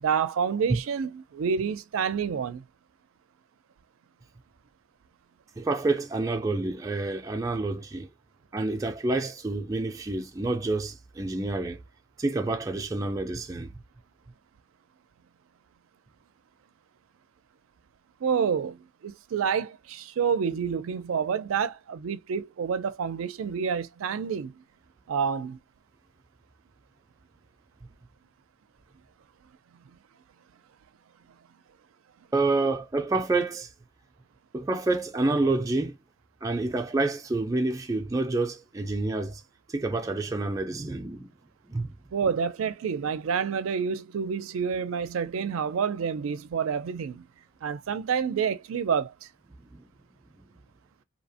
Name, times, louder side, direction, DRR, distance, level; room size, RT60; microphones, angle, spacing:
voice 1, 0.0-2.6 18.2-24.5 25.1-25.6 42.1-47.3 47.6-49.1, right 6 dB, 90° right, 0.4 m, -28 dB
voice 2, 5.6-8.1 8.5-11.8 12.2-13.7 32.3-33.7 34.5-36.0 36.4-39.4 39.7-41.3 41.6-41.9 49.7-49.9, right 2 dB, 15° right, 0.3 m, -28 dB
2.7 x 2.0 x 2.7 m
head